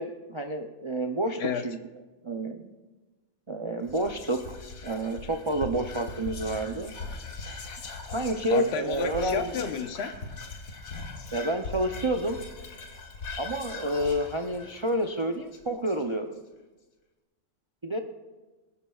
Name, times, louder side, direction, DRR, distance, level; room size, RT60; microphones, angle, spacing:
voice 1, 0.0-1.8 2.2-2.7 3.5-4.6 4.8-6.9 8.1-9.6 11.3-12.4 13.4-16.4 17.8-18.0, right 1 dB, 50° right, 4 dB, 0.3 m, -29 dB
Whispering, 3.8-16.3, left 3 dB, 80° left, 1.7 m, -40 dB
voice 2, 8.5-10.1, left 6 dB, 55° left, 8 dB, 1.0 m, -31 dB
20.0 x 11.5 x 2.3 m, 1.2 s
omnidirectional pair, 1.4 m